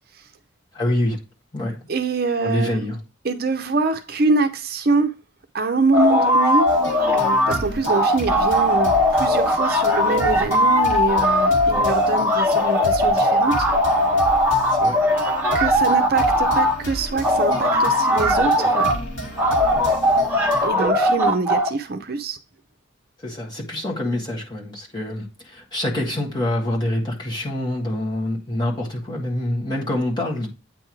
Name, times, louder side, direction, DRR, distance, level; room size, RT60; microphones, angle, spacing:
voice 1, 0.7-1.2 1.5-1.8 2.4-3.0 14.7-15.0 19.7-19.8 23.2-30.5, left 1 dB, 20° left, 1.6 m, -26 dB
voice 2, 1.9-2.9 3.2-5.1 5.5-6.7 7.1-13.7 15.5-18.9 20.6-22.4, right 3 dB, 50° right, 0.6 m, -24 dB
sound 1, 5.9-7.6 7.9-16.8 17.2-19.0 19.4-21.7, left 1 dB, 10° right, 1.3 m, -19 dB
sound 2, 6.7-20.7, right 1 dB, 70° left, 2.1 m, -33 dB
9.0 x 3.5 x 4.6 m
head